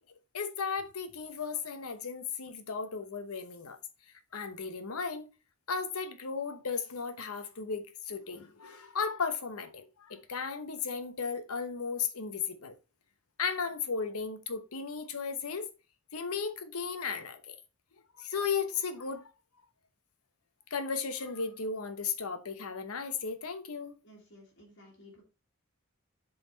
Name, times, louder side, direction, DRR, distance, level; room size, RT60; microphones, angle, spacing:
voice 1, 0.3-3.8 4.3-5.3 5.7-12.7 13.4-15.7 16.1-17.5 18.2-19.2 20.7-23.9, left 5 dB, 90° left, 1.0 m, -35 dB
voice 2, 24.0-25.2, left 1 dB, 55° left, 1.8 m, -55 dB
7.7 x 4.1 x 4.0 m
head